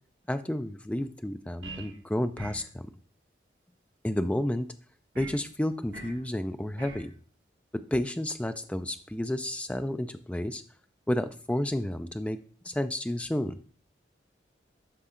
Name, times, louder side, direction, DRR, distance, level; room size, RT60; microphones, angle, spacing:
voice 1, 0.3-2.9 4.0-4.7 5.2-7.1 7.7-10.6 11.1-12.4 12.6-13.6, left 1 dB, 5° left, 9 dB, 0.4 m, -31 dB
sound 1, 1.6-2.0 2.4-2.7 5.2-5.4 5.9-6.2 6.8-7.1, right 2 dB, 80° right, 1.2 m, -43 dB
11.0 x 4.1 x 3.7 m, 0.43 s
head